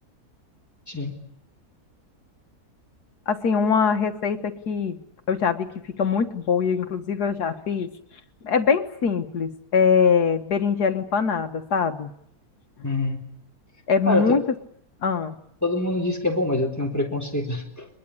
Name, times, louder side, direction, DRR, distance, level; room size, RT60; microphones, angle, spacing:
voice 1, 0.9-1.3 12.8-13.2 14.1-14.3 15.6-17.9, left 2 dB, 10° left, 0 dB, 3.6 m, -25 dB
voice 2, 3.3-5.0 5.3-5.7 6.0-7.9 8.4-12.1 13.9-14.4 15.0-15.4, left 6 dB, 80° left, 7 dB, 1.9 m, -22 dB
22.5 x 22.0 x 9.9 m, 0.72 s
omnidirectional pair, 1.7 m